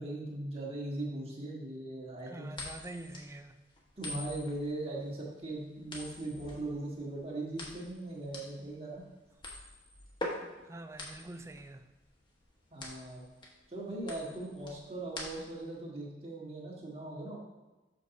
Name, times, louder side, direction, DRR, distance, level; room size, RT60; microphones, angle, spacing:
voice 1, 0.0-2.5 4.0-9.0 12.7-13.2 13.7-17.4, right 2 dB, 35° right, -3 dB, 1.6 m, -39 dB
voice 2, 2.3-3.5 10.6-11.9, right 2 dB, 15° right, 8 dB, 0.3 m, -46 dB
sound 1, 2.5-15.7, left 1 dB, 30° left, 1.1 m, -44 dB
6.4 x 5.2 x 4.0 m, 1.1 s
head